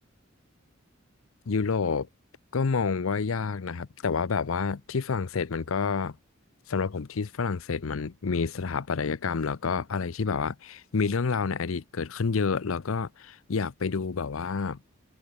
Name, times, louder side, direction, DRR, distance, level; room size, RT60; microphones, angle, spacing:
voice 1, 1.5-2.1 2.5-6.2 6.7-14.8, left 5 dB, 85° left, 0.6 m, -29 dB
head